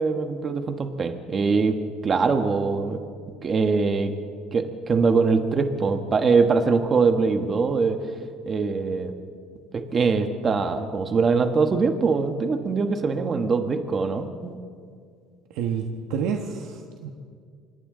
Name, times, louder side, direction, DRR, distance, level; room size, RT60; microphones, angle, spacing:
voice 1, 0.0-3.0 3.4-4.1 4.5-8.0 8.4-9.1 9.7-14.6, right 4 dB, 30° right, 7 dB, 1.4 m, -23 dB
voice 2, 15.5-17.1, right 6 dB, 80° right, 3 dB, 1.4 m, -29 dB
27.0 x 25.0 x 3.9 m, 2.1 s
cardioid pair, 130°, 0 cm